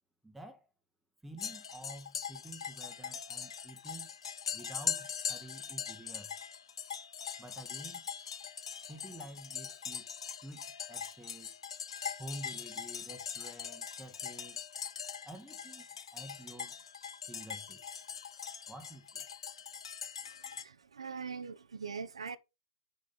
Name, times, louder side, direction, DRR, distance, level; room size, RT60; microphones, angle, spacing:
voice 1, 0.2-0.7 1.2-4.1 4.5-6.3 7.4-8.0 8.8-10.1 10.4-11.6 12.2-14.7 15.2-16.8 17.3-18.2 18.7-19.3, right 1 dB, 5° right, 1.2 m, -50 dB
sound 1, 1.4-20.6, left 7 dB, 70° left, 0.8 m, -41 dB
voice 2, 20.2-22.4, right 5 dB, 75° right, 0.7 m, -42 dB
6.4 x 5.4 x 5.3 m
figure-of-eight pair, 110°, 3 cm